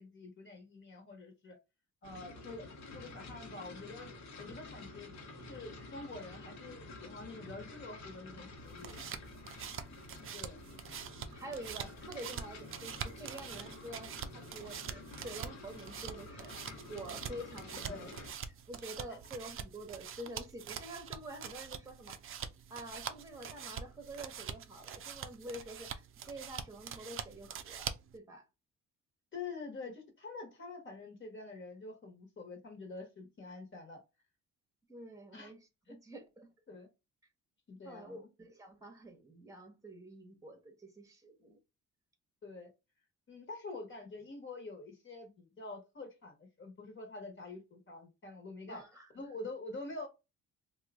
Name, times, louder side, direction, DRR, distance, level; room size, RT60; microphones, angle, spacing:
voice 1, 0.0-1.6 2.0-4.1 4.4-9.0 10.3-10.6 17.8-18.1 19.1-19.2 29.3-34.0 35.3-35.5 35.9-36.0 36.7-36.9 37.7-38.3 42.4-42.7 43.3-48.8 49.1-50.1, left 3 dB, 40° left, 1.2 m, -46 dB
sound 1, 2.0-18.3, left 2 dB, 65° left, 1.1 m, -50 dB
sound 2, 8.6-28.2, right 8 dB, 45° right, 0.5 m, -45 dB
voice 2, 11.3-16.5 16.9-18.1 18.5-22.2 22.7-28.5 34.9-36.5 37.8-41.6 48.7-49.1, right 1 dB, 10° right, 1.0 m, -48 dB
2.9 x 2.3 x 3.5 m
cardioid pair, 90°, 30 cm